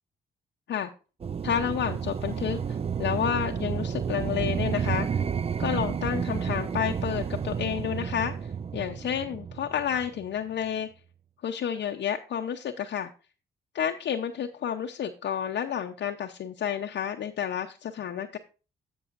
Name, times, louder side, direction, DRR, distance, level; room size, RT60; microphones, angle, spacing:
sound 1, 1.2-10.3, right 7 dB, 30° right, 0.4 m, -31 dB
voice 1, 1.4-5.2 5.6-10.9 11.4-13.1 13.7-18.4, left 9 dB, 65° left, 3 dB, 0.7 m, -30 dB
14.0 x 5.5 x 2.5 m, 0.33 s
supercardioid pair, 50°, 19 cm